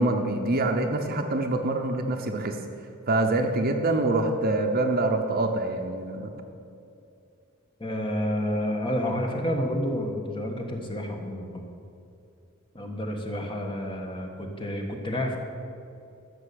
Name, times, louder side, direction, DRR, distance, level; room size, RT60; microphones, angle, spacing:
voice 1, 0.0-2.6 3.1-6.3, right 2 dB, 45° right, 4 dB, 0.9 m, -25 dB
voice 2, 7.8-11.6 12.7-15.4, equal, 25° left, 2 dB, 1.5 m, -29 dB
13.0 x 6.8 x 8.5 m, 2.6 s
head